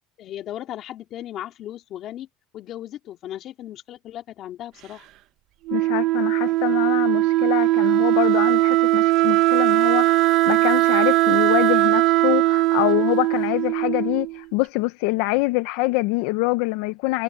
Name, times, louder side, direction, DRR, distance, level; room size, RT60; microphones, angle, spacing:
voice 1, 0.2-2.3 2.5-5.1, left 12 dB, 45° left, 2.9 m, -36 dB
voice 2, 5.7-17.2, left 22 dB, 75° left, 0.6 m, -25 dB
Wind instrument woodwind instrument, 5.7-14.4, right 18 dB, 55° right, 0.9 m, -19 dB
cardioid pair, 145°, 0 cm